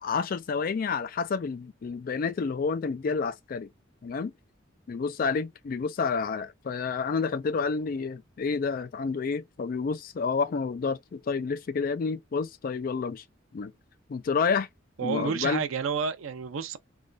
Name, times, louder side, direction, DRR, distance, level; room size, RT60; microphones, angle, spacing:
voice 1, 0.0-3.7 4.0-4.3 4.9-13.2 13.5-13.7 14.1-14.7 15.0-15.7, left 5 dB, 45° left, 0.3 m, -29 dB
voice 2, 15.0-16.8, right 6 dB, 90° right, 0.5 m, -30 dB
3.3 x 2.2 x 2.5 m
head